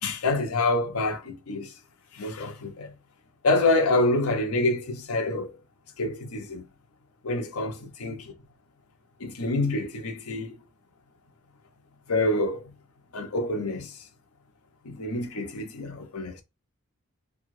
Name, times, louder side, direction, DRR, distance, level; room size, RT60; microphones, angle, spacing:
voice 1, 0.0-1.7 2.1-2.9 3.4-5.5 6.0-6.6 7.2-8.3 9.2-10.5 12.1-12.7 13.1-14.0 14.8-16.4, left 2 dB, 90° left, 0.8 m, -27 dB
2.9 x 2.3 x 3.1 m
head